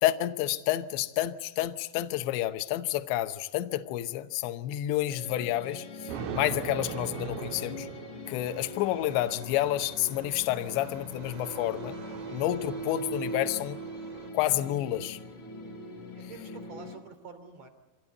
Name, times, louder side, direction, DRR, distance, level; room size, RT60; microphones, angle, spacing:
voice 1, 0.0-7.9 8.3-12.0 12.3-13.8 14.3-15.2, left 14 dB, 75° left, 3.1 m, -29 dB
sound 1, 5.1-17.0, equal, 30° left, 3.5 m, -41 dB
Thunder, 6.1-8.6, right 6 dB, 85° right, 4.1 m, -38 dB
sound 2, 8.2-14.3, right 8 dB, 65° right, 3.7 m, -50 dB
voice 2, 16.2-17.7, right 5 dB, 40° right, 3.7 m, -47 dB
25.5 x 17.5 x 9.5 m
omnidirectional pair, 5.7 m